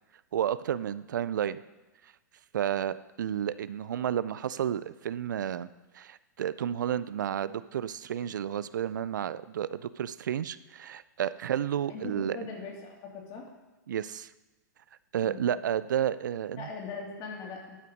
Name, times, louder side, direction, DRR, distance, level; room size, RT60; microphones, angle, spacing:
voice 1, 0.3-1.6 2.5-5.7 5.9-12.4 13.9-14.3 15.1-16.7, right 10 dB, 75° right, 16 dB, 0.4 m, -31 dB
voice 2, 11.9-13.4 15.2-15.4 16.5-17.8, left 4 dB, 40° left, -1 dB, 2.8 m, -40 dB
11.5 x 5.6 x 5.2 m, 1.1 s
hypercardioid pair, 115°, 10 cm